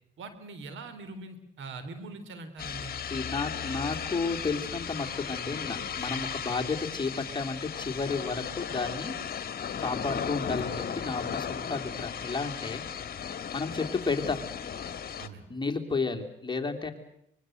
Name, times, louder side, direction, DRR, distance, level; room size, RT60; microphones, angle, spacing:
voice 1, 0.2-2.9 15.2-15.4, right 3 dB, 75° right, 11 dB, 3.6 m, -42 dB
sound 1, 2.6-15.3, left 8 dB, 50° left, 1.8 m, -36 dB
voice 2, 3.1-9.1 9.8-12.8 13.5-14.4 15.5-16.9, left 4 dB, 20° left, 3 dB, 3.2 m, -32 dB
24.5 x 22.0 x 7.9 m, 0.72 s
cardioid pair, 90°, 20 cm